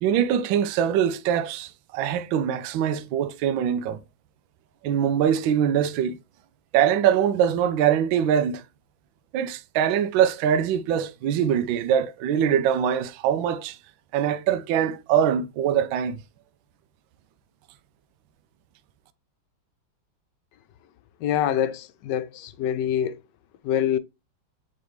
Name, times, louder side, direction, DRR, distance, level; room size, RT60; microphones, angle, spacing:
voice 1, 0.0-4.0 4.8-6.2 6.7-8.6 9.3-13.8 14.1-16.2, right 9 dB, 75° right, 1.4 m, -23 dB
voice 2, 21.2-23.2 23.6-24.0, left 10 dB, 70° left, 1.1 m, -25 dB
8.2 x 4.3 x 3.1 m
omnidirectional pair, 2.3 m